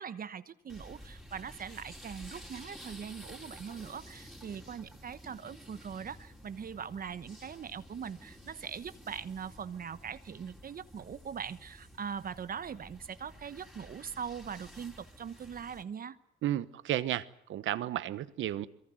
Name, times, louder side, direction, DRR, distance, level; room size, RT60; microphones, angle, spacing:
voice 1, 0.0-16.2, right 7 dB, 45° right, 13 dB, 1.1 m, -41 dB
sound 1, 0.7-15.8, equal, ahead, 4.4 m, -52 dB
voice 2, 16.4-18.7, right 12 dB, 75° right, 15 dB, 1.1 m, -33 dB
24.0 x 22.5 x 7.8 m, 0.75 s
cardioid pair, 90°, 20 cm